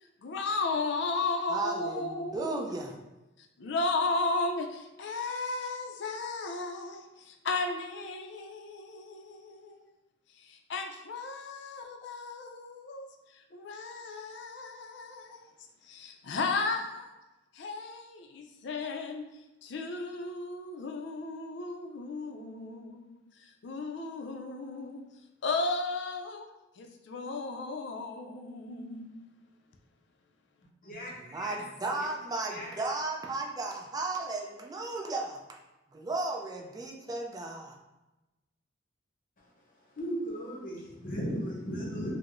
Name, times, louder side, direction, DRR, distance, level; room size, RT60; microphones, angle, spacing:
voice 1, 0.2-2.7 3.6-9.8 10.4-15.5 15.8-17.1 17.5-19.2 19.6-25.0 25.4-26.5 26.8-29.2, left 3 dB, 65° left, 0.4 m, -35 dB
voice 2, 1.5-3.0 31.1-35.6 35.9-37.8, right 2 dB, 20° right, 0.4 m, -35 dB
voice 3, 30.8-31.6 32.0-32.1 32.5-32.8 39.4-39.5 39.9-42.2, equal, 45° left, 0.8 m, -36 dB
4.5 x 2.0 x 2.5 m
head